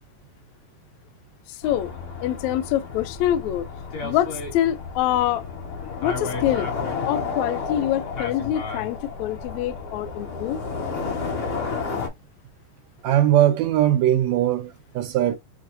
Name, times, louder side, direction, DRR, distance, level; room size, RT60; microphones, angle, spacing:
voice 1, 1.5-1.9 2.2-3.7 4.0-5.4 6.0-6.7 7.0-10.6, left 12 dB, 80° left, 1.7 m, -25 dB
sound 1, 1.6-12.1, left 5 dB, 50° left, 2.2 m, -31 dB
voice 2, 13.0-15.4, right 12 dB, 80° right, 1.6 m, -20 dB
7.2 x 2.5 x 2.6 m
omnidirectional pair, 3.7 m